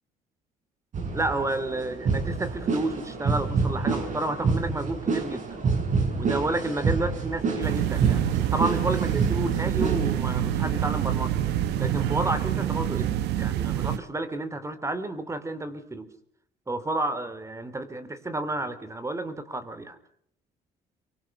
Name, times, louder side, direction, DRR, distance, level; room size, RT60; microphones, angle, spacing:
sound 1, 0.9-13.1, right 4 dB, 45° right, 6.2 m, -29 dB
voice 1, 1.1-5.6 6.1-11.4 11.8-16.1 16.7-20.0, right 2 dB, 15° right, 12 dB, 3.4 m, -31 dB
sound 2, 7.6-14.0, right 11 dB, 80° right, 1.4 m, -26 dB
24.5 x 24.0 x 5.5 m, 0.67 s
cardioid pair, 110°, 17 cm